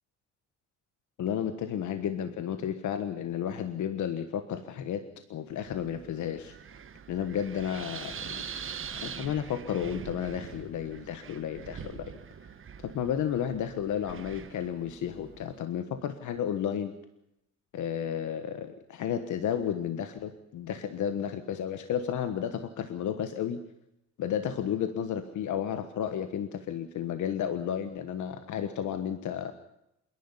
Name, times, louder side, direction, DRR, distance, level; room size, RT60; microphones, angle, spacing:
voice 1, 1.2-6.6 7.1-8.4 8.9-12.1 12.8-16.9 17.7-23.6 24.2-29.5, left 9 dB, 75° left, 9 dB, 1.4 m, -32 dB
Wind, 5.5-15.6, right 7 dB, 45° right, 1.2 m, -44 dB
27.0 x 11.0 x 9.9 m, 0.84 s
cardioid pair, 90°, 30 cm